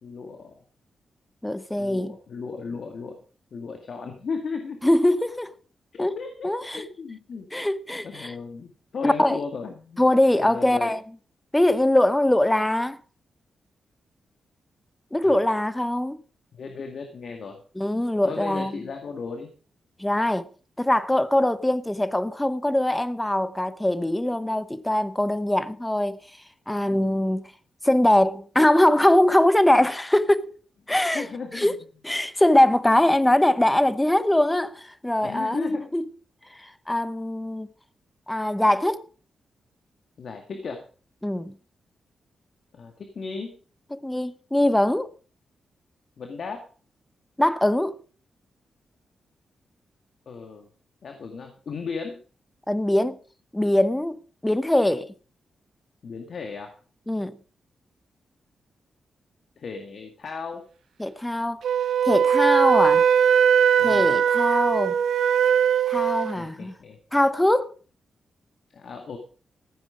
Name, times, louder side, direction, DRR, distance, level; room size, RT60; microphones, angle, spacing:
voice 1, 0.0-0.5 1.8-3.2 3.5-4.8 5.9-7.5 8.0-10.0 10.4-10.9 15.2-15.6 16.5-17.6 18.2-19.5 26.9-27.2 30.9-31.8 35.2-35.9 40.2-40.8 42.7-43.6 46.2-46.6 50.3-50.7 51.0-52.2 56.0-56.7 59.6-60.6 63.8-64.1 66.4-67.0 68.7-69.2, left 5 dB, 60° left, 2.0 m, -36 dB
voice 2, 1.4-2.2 4.8-5.5 6.0-6.2 6.4-6.8 7.5-8.3 9.0-9.4 10.0-11.0 11.5-13.0 15.1-16.2 17.8-18.8 20.0-20.5 20.8-26.2 26.7-27.5 27.8-30.5 30.9-31.7 32.0-36.1 36.5-37.7 38.3-39.1 41.2-41.5 43.9-45.1 47.4-48.0 52.7-53.2 53.5-55.1 57.1-57.4 61.0-61.6 62.0-63.1 63.8-65.0 65.9-66.7 67.1-67.7, left 1 dB, 10° left, 0.8 m, -22 dB
Wind instrument woodwind instrument, 61.6-66.4, right 8 dB, 80° right, 0.6 m, -20 dB
15.0 x 9.2 x 5.0 m
cardioid pair, 100°, 0 cm